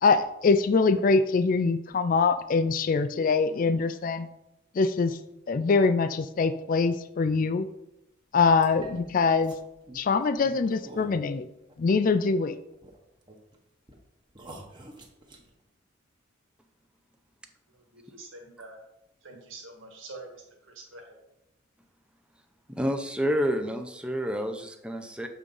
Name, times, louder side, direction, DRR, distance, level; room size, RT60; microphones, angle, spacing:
voice 1, 0.0-4.3 4.8-5.2 5.5-7.7 8.3-9.5 9.9-11.5 11.8-12.6, left 4 dB, 45° left, 11 dB, 0.4 m, -23 dB
sound 1, 8.6-12.4 12.7-13.6 13.9-14.0 14.3-15.5, right 1 dB, 25° right, 1.0 m, -47 dB
voice 2, 17.7-18.8 19.2-21.2, right 2 dB, 80° right, 0 dB, 1.5 m, -46 dB
voice 3, 22.7-25.3, equal, 5° right, 5 dB, 0.5 m, -29 dB
6.9 x 3.6 x 5.3 m, 0.87 s
head